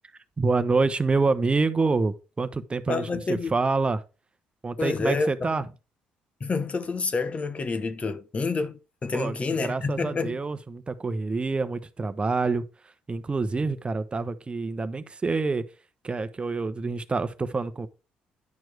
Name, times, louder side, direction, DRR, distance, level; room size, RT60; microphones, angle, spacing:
voice 1, 0.4-4.0 4.6-5.7 9.1-15.6 16.0-17.9, right 3 dB, 30° right, 0.9 m, -27 dB
voice 2, 2.9-3.5 4.8-5.5 6.4-10.4, left 4 dB, 35° left, 1.0 m, -28 dB
10.5 x 4.6 x 4.7 m
hypercardioid pair, 55°, 4 cm